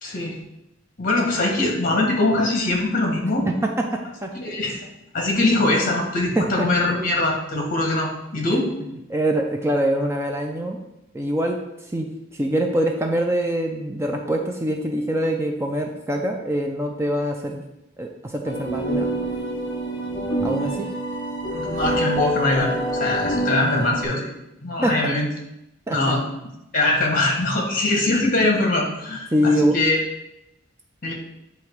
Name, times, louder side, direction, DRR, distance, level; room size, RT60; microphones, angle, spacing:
voice 1, 0.0-0.4 1.0-3.4 4.4-4.8 5.1-8.7 21.5-24.3 24.6-25.3 25.9-26.2 26.7-30.0 31.0-31.1, left 2 dB, 45° left, 0 dB, 1.4 m, -22 dB
voice 2, 3.5-4.3 6.4-6.7 9.1-10.8 11.1-11.6 11.9-12.1 12.3-17.6 18.0-19.1 20.4-20.9 24.8-25.1 25.9-26.1 29.3-29.7, right 1 dB, 15° right, 2 dB, 0.4 m, -24 dB
sound 1, 18.4-24.0, right 1 dB, 25° left, 0.9 m, -26 dB
8.5 x 2.9 x 4.6 m, 0.88 s
head